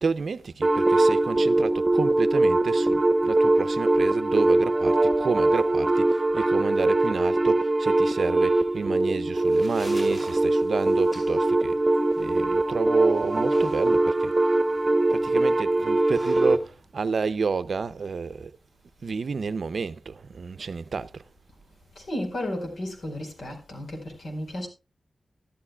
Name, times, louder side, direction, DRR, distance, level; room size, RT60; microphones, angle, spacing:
voice 1, 0.0-11.8 12.2-14.6 15.1-18.5 19.0-21.2, right 5 dB, 65° right, 0.5 m, -30 dB
sound 1, 0.6-16.6, right 2 dB, 25° right, 1.0 m, -22 dB
sound 2, 9.2-18.2, equal, 25° left, 5.8 m, -48 dB
voice 2, 22.1-24.7, left 1 dB, 75° left, 4.3 m, -33 dB
13.5 x 12.5 x 2.3 m
wide cardioid pair, 90°, 0 cm